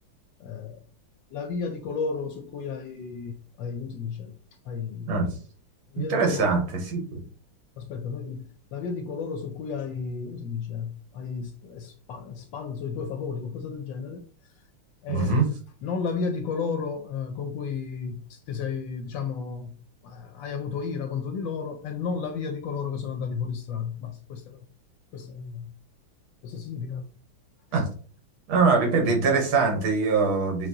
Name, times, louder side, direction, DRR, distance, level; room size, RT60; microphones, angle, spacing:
voice 1, 0.4-0.8 1.3-4.3 4.6-5.3 5.9-6.5 7.8-14.2 15.0-15.5 15.8-19.8 20.0-24.6 25.1-25.7 26.4-27.1, left 5 dB, 75° left, 1.1 m, -33 dB
voice 2, 6.0-7.2 15.1-15.5 27.7-27.9 28.5-30.7, right 4 dB, 75° right, 1.9 m, -23 dB
6.0 x 2.4 x 2.7 m
omnidirectional pair, 2.3 m